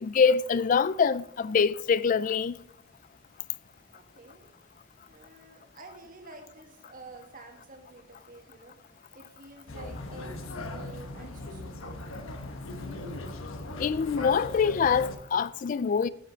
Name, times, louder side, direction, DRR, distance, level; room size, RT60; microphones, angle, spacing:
voice 1, 0.0-2.6 13.8-16.1, left 6 dB, 40° left, 0.3 m, -24 dB
voice 2, 3.9-4.5 5.1-8.8 9.1-12.3, right 2 dB, 40° right, 1.5 m, -50 dB
sound 1, 9.7-15.2, left 2 dB, 85° left, 1.1 m, -39 dB
8.9 x 7.5 x 5.1 m
head